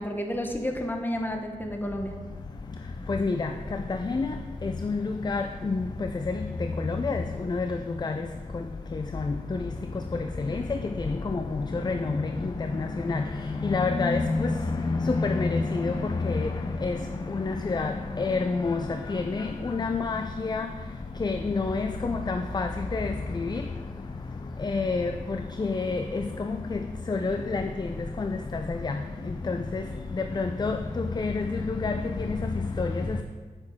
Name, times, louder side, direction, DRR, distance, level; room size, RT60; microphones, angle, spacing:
voice 1, 0.0-2.2, equal, 15° left, 3 dB, 1.1 m, -31 dB
voice 2, 3.1-3.5 4.1-4.3 4.6-5.0 5.2-5.9 6.9-7.2 7.5-7.7 8.0-8.1 10.5-10.6 11.1-11.4 11.8-12.3 13.1-13.2 13.6-14.5 14.9-15.9 16.2-16.5 16.8-17.0 17.3-17.9 18.2-18.8 19.1-19.4 19.7-20.7 21.2-23.1 23.4-23.6 24.6-25.1 25.6-26.2 26.7-26.8 27.1-27.6 28.2-28.3 28.8-28.9 29.5-29.8 30.4-30.8 31.2-31.4 31.8-32.0 32.8-32.9, left 4 dB, 30° left, 7 dB, 0.4 m, -27 dB
8.8 x 6.1 x 3.6 m, 1.4 s
cardioid pair, 55°, 14 cm